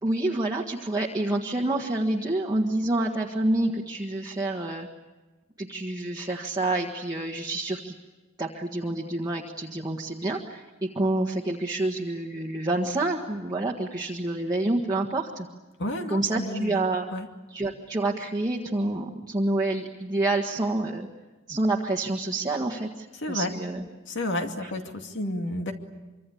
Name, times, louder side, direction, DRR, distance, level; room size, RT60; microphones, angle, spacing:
voice 1, 0.0-4.9 5.6-7.9 8.4-15.5 16.1-17.1 17.5-21.1 21.5-23.8 24.6-24.7, right 2 dB, 20° right, -2 dB, 1.6 m, -28 dB
voice 2, 15.8-16.8 17.1-17.3 23.2-23.5 24.1-25.7, left 1 dB, 60° left, 4 dB, 2.5 m, -31 dB
25.0 x 25.0 x 8.6 m, 1.2 s
head